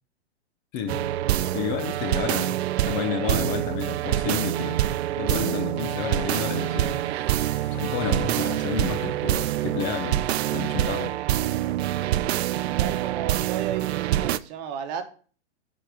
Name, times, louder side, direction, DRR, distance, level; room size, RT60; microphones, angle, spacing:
voice 1, 0.7-1.1 1.5-2.6 2.9-4.8 5.2-7.0 7.7-11.2, left 8 dB, 25° left, 7 dB, 0.5 m, -31 dB
sound 1, 0.9-14.4, right 13 dB, 65° right, 0.5 m, -26 dB
sound 2, 3.7-9.7, equal, 5° left, 3.2 m, -51 dB
voice 2, 12.6-15.0, right 8 dB, 40° right, 7 dB, 1.2 m, -34 dB
6.6 x 5.0 x 5.8 m, 0.41 s
hypercardioid pair, 140°, 34 cm